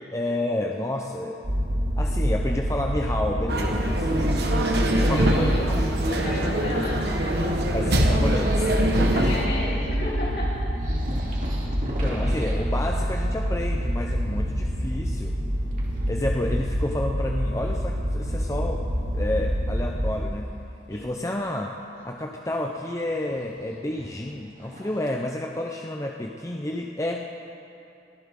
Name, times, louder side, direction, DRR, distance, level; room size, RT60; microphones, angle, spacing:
voice 1, 0.0-1.4 2.0-4.1 5.1-5.8 7.7-9.3 11.5-15.4 16.1-18.9 19.1-20.5 20.9-21.8 22.0-27.3, left 1 dB, 15° left, 1 dB, 0.6 m, -30 dB
sound 1, 1.4-20.2, equal, 85° right, 1.9 m, -26 dB
sound 2, 3.5-9.5, right 1 dB, 70° right, 1.4 m, -24 dB
voice 2, 4.0-5.7 6.1-7.1 7.4-7.7 9.0-10.6 20.9-21.2, left 1 dB, 65° left, -5 dB, 5.0 m, -33 dB
sound 3, 7.5-9.5 10.3-10.4 10.6-13.7 14.0-14.5 15.7-16.1 16.8-16.9 18.8-18.9 22.0-25.2, right 1 dB, 50° right, 2.7 m, -39 dB
24.0 x 15.0 x 3.8 m, 2.7 s
head